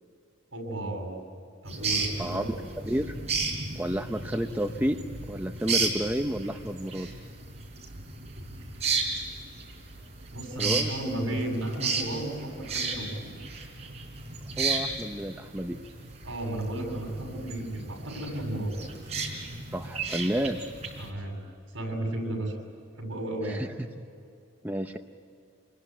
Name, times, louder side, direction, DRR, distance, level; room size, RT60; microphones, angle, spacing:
voice 1, 0.5-1.2 1.6-2.5 10.3-13.3 16.2-18.7 21.0-21.4 21.7-22.5 23.0-23.6, right 1 dB, 65° right, 2 dB, 7.4 m, -33 dB
sound 1, 1.7-21.1, right 4 dB, 30° right, 4.2 m, -34 dB
voice 2, 2.2-2.6 2.8-3.2 3.8-5.0 5.3-7.1 10.6-10.9 14.6-15.8 19.7-20.6 23.4-23.9 24.6-25.0, equal, 10° right, 4 dB, 0.7 m, -30 dB
26.5 x 21.5 x 9.4 m, 2.5 s
head